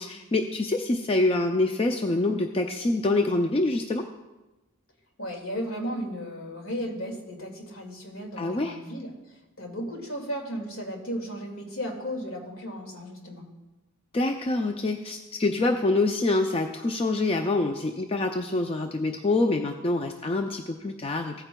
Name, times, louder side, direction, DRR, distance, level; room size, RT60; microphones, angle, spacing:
voice 1, 0.0-4.0 8.4-8.8 14.1-21.4, left 2 dB, 25° left, 4 dB, 0.4 m, -26 dB
voice 2, 5.2-9.1 9.6-13.5, equal, 70° left, 1 dB, 2.1 m, -35 dB
16.0 x 9.0 x 2.2 m, 1.1 s
head